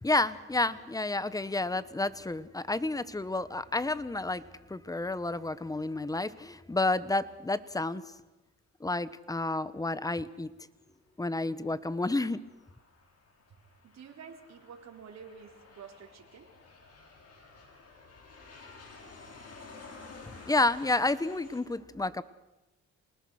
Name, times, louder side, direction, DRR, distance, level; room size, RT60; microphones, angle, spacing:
voice 1, 0.0-4.4 4.7-8.0 8.8-10.5 11.2-12.4 20.5-22.2, left 2 dB, 10° left, 16 dB, 1.1 m, -30 dB
Aircraft, 11.5-21.6, left 3 dB, 55° left, 6.7 m, -52 dB
voice 2, 13.8-16.5, right 6 dB, 60° right, 3 dB, 4.0 m, -49 dB
28.0 x 19.5 x 6.5 m, 1.0 s
cardioid pair, 90°, 30 cm